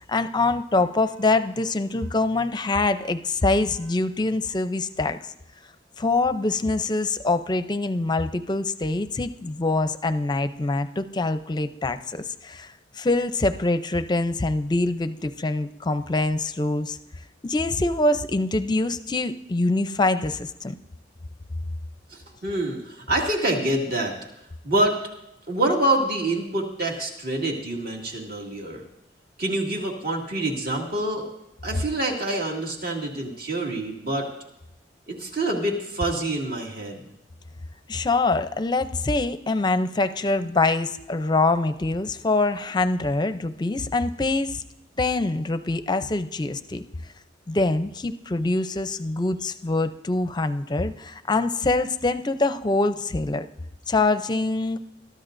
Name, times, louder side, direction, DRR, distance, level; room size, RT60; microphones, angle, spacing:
voice 1, 0.1-5.2 6.0-17.0 17.4-20.8 37.9-44.6 45.0-46.8 47.5-53.5 53.9-54.8, left 2 dB, 25° left, 11 dB, 0.5 m, -24 dB
voice 2, 22.1-24.2 24.6-25.0 25.5-28.8 29.4-31.2 31.6-34.3 35.1-37.0, right 1 dB, 55° right, 0 dB, 2.3 m, -26 dB
22.5 x 13.0 x 2.6 m, 0.87 s
head